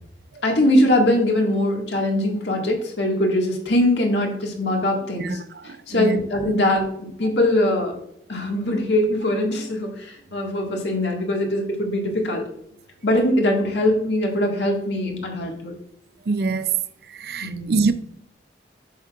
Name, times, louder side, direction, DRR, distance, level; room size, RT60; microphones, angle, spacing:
voice 1, 0.4-5.4 5.9-7.9 8.3-12.4 13.0-15.7 17.4-17.9, left 1 dB, 85° left, 1.8 m, -22 dB
voice 2, 5.6-6.2 16.3-16.7 17.2-17.9, right 3 dB, 60° right, 0.5 m, -24 dB
8.1 x 6.0 x 2.4 m
head